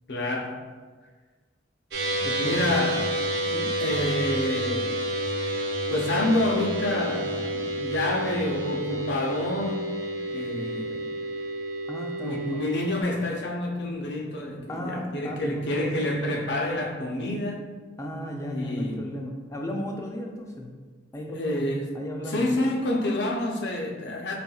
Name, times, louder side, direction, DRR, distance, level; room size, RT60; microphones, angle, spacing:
voice 1, 0.1-0.6 2.4-3.0 3.8-5.0 5.9-9.9 10.3-11.2 12.2-17.7 18.5-19.1 21.3-21.9 22.3-24.4, left 1 dB, 60° left, 1 dB, 0.5 m, -28 dB
sound 1, 1.9-13.0, right 1 dB, 55° right, 0.6 m, -29 dB
voice 2, 11.9-12.7 14.7-15.9 18.0-20.7 21.1-21.6 21.9-22.5, equal, 15° left, 1 dB, 0.3 m, -35 dB
4.2 x 3.4 x 2.3 m, 1.4 s
head